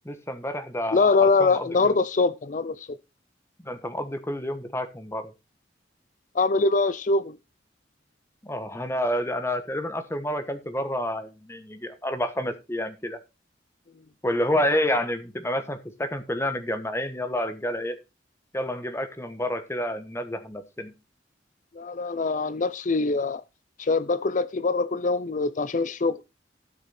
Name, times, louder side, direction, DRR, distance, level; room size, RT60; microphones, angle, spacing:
voice 1, 0.0-2.0 3.6-5.3 8.4-13.2 14.2-18.0 18.5-20.9, left 1 dB, 15° left, 1.2 m, -29 dB
voice 2, 0.9-2.9 6.3-7.4 21.8-23.4 23.8-26.2, left 3 dB, 45° left, 0.5 m, -23 dB
12.0 x 6.6 x 4.2 m
head